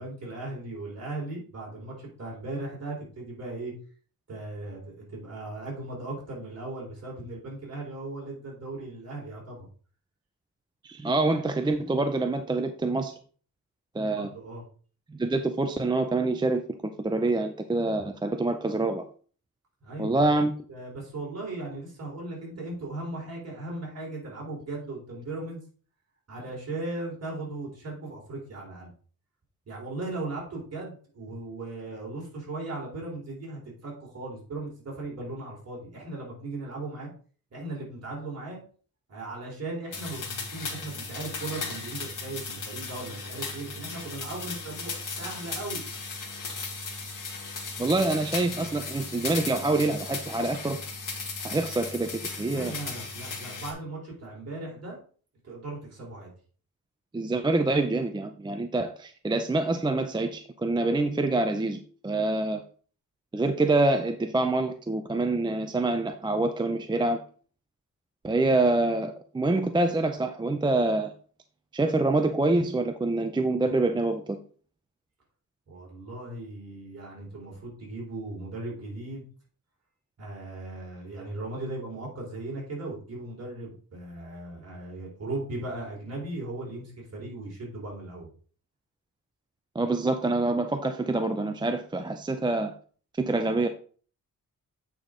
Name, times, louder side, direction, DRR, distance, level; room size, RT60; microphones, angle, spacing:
voice 1, 0.0-3.7 4.3-9.7 14.1-14.6 19.8-20.3 20.7-25.6 26.3-28.9 29.7-37.1 37.5-38.6 39.1-45.8 52.5-55.0 55.4-56.3 75.7-79.3 80.2-88.3, right 2 dB, 45° right, -3 dB, 3.7 m, -37 dB
voice 2, 10.8-13.1 13.9-14.3 15.1-16.6 17.0-19.0 20.0-20.5 47.8-50.8 51.4-52.1 52.4-52.7 57.1-62.6 63.3-67.2 68.2-71.1 71.7-74.4 89.7-92.7 93.2-93.7, right 2 dB, 15° right, 6 dB, 0.4 m, -26 dB
sound 1, 39.9-53.7, left 4 dB, 60° left, 1.7 m, -36 dB
8.4 x 5.2 x 3.7 m, 0.42 s
wide cardioid pair, 150°, 35 cm